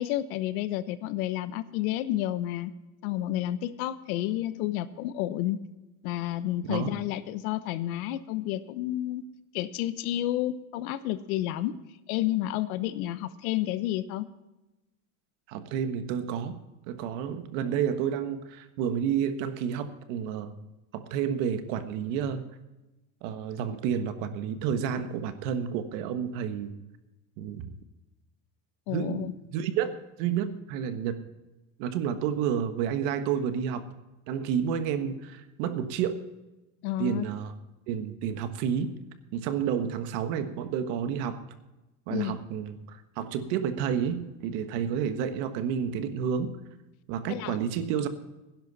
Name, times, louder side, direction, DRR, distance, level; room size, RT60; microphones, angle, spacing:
voice 1, 0.0-2.7 3.0-5.6 6.0-9.2 9.5-11.8 12.1-14.3 28.9-29.3 36.8-37.2 42.1-42.3 47.3-47.6, left 14 dB, 80° left, 14 dB, 1.0 m, -30 dB
voice 2, 15.5-20.5 20.9-22.5 23.2-26.8 27.4-27.8 28.9-31.2 31.8-33.8 34.3-36.2 37.0-37.5 37.9-39.0 39.3-41.4 42.1-46.6 47.1-48.1, right 8 dB, 60° right, 10 dB, 1.4 m, -30 dB
17.5 x 10.5 x 4.1 m, 1.0 s
cardioid pair, 180°, 42 cm